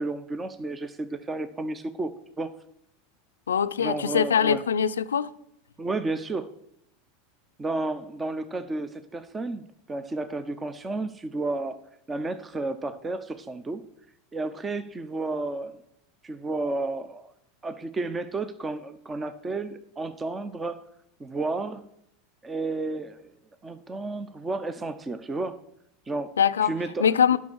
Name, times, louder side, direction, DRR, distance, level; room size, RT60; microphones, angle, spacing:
voice 1, 0.0-2.1 2.4-2.5 3.8-4.6 5.8-6.5 7.6-11.8 12.1-13.8 14.3-15.7 16.2-17.3 17.6-20.8 21.2-21.8 22.4-23.3 23.6-25.6 26.1-26.3 26.6-27.1, right 2 dB, 20° right, 0.7 m, -32 dB
voice 2, 3.5-5.3 26.4-26.7 27.0-27.4, left 7 dB, 90° left, 0.5 m, -22 dB
9.5 x 6.0 x 6.3 m
hypercardioid pair, 95°, 0 cm